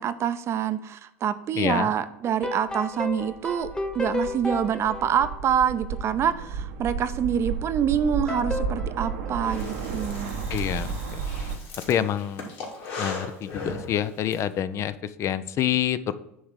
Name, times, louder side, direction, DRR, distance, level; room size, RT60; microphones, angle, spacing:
voice 1, 0.0-3.7 3.9-10.4, right 8 dB, 35° right, 12 dB, 0.7 m, -26 dB
voice 2, 1.5-1.9 10.5-11.2 11.9-12.5 13.0-16.2, left 10 dB, 40° left, 14 dB, 0.5 m, -27 dB
sound 1, 2.2-6.0 8.3-10.1, left 2 dB, 10° left, 1.2 m, -33 dB
sound 2, 3.2-11.5, right 6 dB, 65° right, 1.0 m, -33 dB
Breathing, 9.4-14.4, left 3 dB, 55° left, 2.6 m, -38 dB
9.5 x 3.6 x 6.3 m, 0.84 s
figure-of-eight pair, 80°, 8 cm